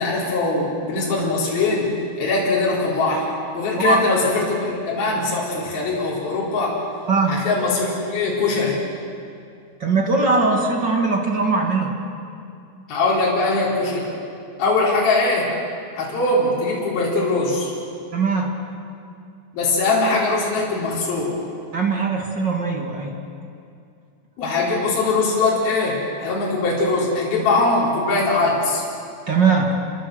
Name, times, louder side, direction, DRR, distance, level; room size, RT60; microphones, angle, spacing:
voice 1, 0.0-6.8 7.3-8.8 12.9-14.1 14.6-15.5 16.0-17.7 19.5-21.4 24.4-28.8, left 3 dB, 60° left, -5 dB, 6.0 m, -21 dB
voice 2, 7.1-7.4 9.8-11.9 18.1-18.5 21.7-23.1 29.3-29.8, right 4 dB, 40° right, 1 dB, 1.8 m, -20 dB
28.0 x 24.0 x 7.8 m, 2.4 s
omnidirectional pair, 5.0 m